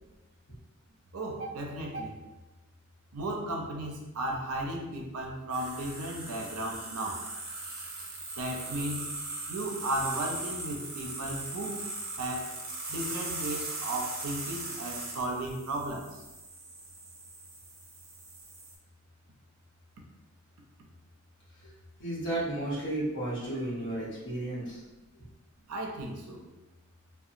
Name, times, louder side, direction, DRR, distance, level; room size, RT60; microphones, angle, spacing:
voice 1, 1.1-2.2 3.1-7.2 8.4-9.1 9.5-11.8 12.2-12.5 12.9-16.2 25.7-26.4, right 1 dB, 85° right, 1 dB, 0.5 m, -35 dB
sound 1, 5.5-18.7, right 2 dB, 45° right, 0.7 m, -39 dB
voice 2, 22.0-24.8, right 1 dB, 55° left, -7 dB, 1.0 m, -33 dB
2.7 x 2.2 x 2.5 m, 1.0 s
head